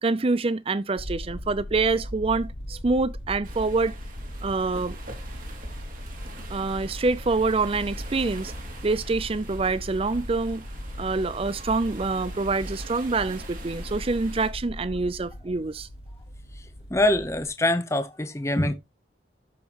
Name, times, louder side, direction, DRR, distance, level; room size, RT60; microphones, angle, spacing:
voice 1, 0.0-4.0 4.4-5.0 6.5-8.5 8.8-10.6 11.0-15.9, right 3 dB, 30° right, 0.5 m, -26 dB
sound 1, 1.0-17.5, equal, 70° left, 2.3 m, -38 dB
sound 2, 3.4-14.5, right 3 dB, 45° right, 2.6 m, -45 dB
voice 2, 16.9-18.7, left 1 dB, 15° left, 0.8 m, -24 dB
13.0 x 5.7 x 3.0 m
head